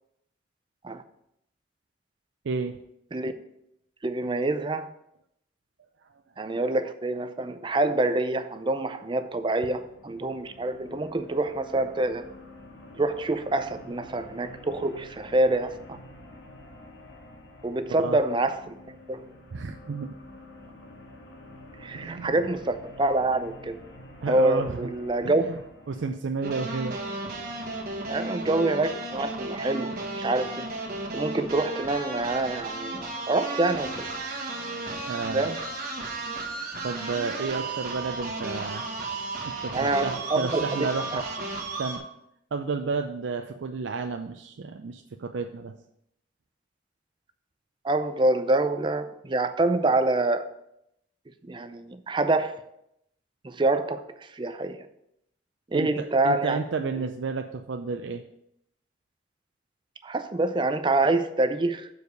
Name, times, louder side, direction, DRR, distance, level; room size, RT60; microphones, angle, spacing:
voice 1, 2.4-2.8 18.0-18.2 19.5-20.1 21.9-22.3 24.2-24.8 25.2-25.6 25.9-27.0 35.1-35.6 36.8-38.8 39.4-41.3 41.8-42.0 42.5-45.7 55.7-58.2, right 4 dB, 80° right, 0.5 m, -31 dB
voice 2, 4.0-4.9 6.4-12.3 12.9-16.0 17.6-18.7 19.1-19.3 21.8-23.8 24.3-25.5 28.1-30.7 31.1-34.1 35.3-35.6 39.7-41.2 47.8-50.5 51.4-52.5 53.4-54.9 55.7-56.6 57.0-57.1 60.0-61.9, right 2 dB, 25° right, 0.5 m, -26 dB
sound 1, 9.1-26.1, left 1 dB, 75° left, 1.7 m, -48 dB
sound 2, 26.4-42.0, right 2 dB, 50° right, 1.4 m, -34 dB
7.0 x 4.8 x 6.6 m
head